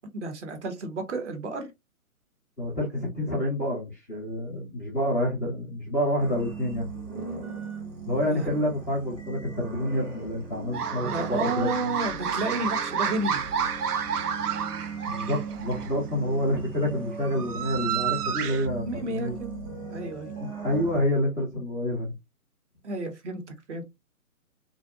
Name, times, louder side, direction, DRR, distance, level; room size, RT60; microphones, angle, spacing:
voice 1, 0.1-1.7 8.2-8.6 11.0-13.4 18.8-19.5 19.9-20.3 22.8-23.4 23.7-23.8, right 2 dB, 50° right, 0.8 m, -31 dB
voice 2, 2.6-6.9 8.1-11.9 15.1-19.4 20.6-22.1, left 1 dB, 10° left, 0.5 m, -28 dB
sound 1, 6.2-21.0, right 4 dB, 25° right, 0.9 m, -38 dB
sound 2, 10.7-15.9 16.9-18.7, right 8 dB, 90° right, 0.6 m, -30 dB
2.6 x 2.1 x 2.5 m
hypercardioid pair, 150°, 44 cm